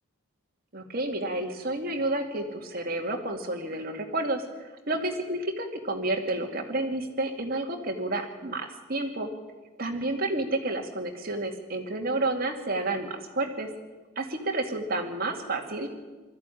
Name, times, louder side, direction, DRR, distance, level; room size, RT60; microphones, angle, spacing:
voice 1, 0.7-9.3 9.8-13.7 14.2-15.9, right 2 dB, 45° right, 3 dB, 2.4 m, -30 dB
20.0 x 14.0 x 10.0 m, 1.3 s
head